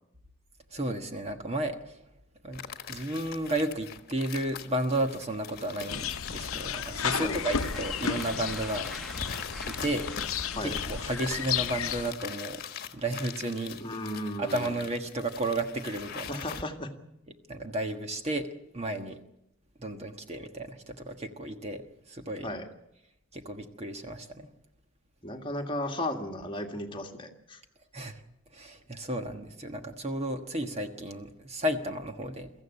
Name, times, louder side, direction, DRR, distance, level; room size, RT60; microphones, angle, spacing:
voice 1, 0.7-2.0 2.4-2.6 2.9-9.3 9.7-10.1 10.6-12.6 12.9-13.8 14.4-16.4 17.5-18.5 18.7-19.2 19.8-22.5 23.3-24.5 27.9-28.2 28.5-32.5, right 1 dB, 30° right, 6 dB, 1.4 m, -33 dB
sound 1, 2.5-16.6, left 6 dB, 45° left, 1.4 m, -42 dB
sound 2, 5.9-12.1, left 7 dB, 80° left, 0.8 m, -33 dB
sound 3, 7.0-11.9, left 2 dB, ahead, 1.4 m, -45 dB
voice 2, 13.8-14.7 16.3-16.9 22.4-22.7 25.2-27.6, left 1 dB, 25° left, 4 dB, 1.8 m, -35 dB
23.5 x 14.5 x 9.9 m, 0.87 s
head